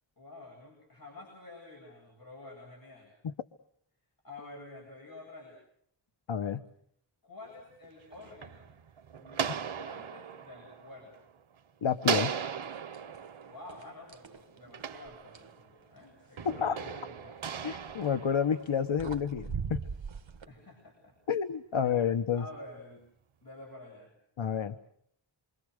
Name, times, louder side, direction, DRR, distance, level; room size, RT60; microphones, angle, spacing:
voice 1, 0.2-3.1 4.2-5.6 7.2-8.7 9.2-11.3 13.4-17.4 20.5-21.1 22.3-23.0 23.4-24.1, left 2 dB, 45° left, 0 dB, 8.0 m, -49 dB
voice 2, 6.3-6.6 11.8-12.3 16.4-16.8 17.6-19.8 21.3-22.5 24.4-24.8, left 7 dB, 80° left, 10 dB, 1.1 m, -29 dB
sound 1, 7.8-11.5 12.0-15.8 16.4-19.0, right 7 dB, 90° right, 1.1 m, -37 dB
sound 2, 12.6-13.3 13.7-15.6 17.8-18.1 18.7-18.8 19.0-20.5, right 6 dB, 70° right, 1.7 m, -40 dB
28.0 x 25.0 x 6.5 m, 0.68 s
wide cardioid pair, 100°, 47 cm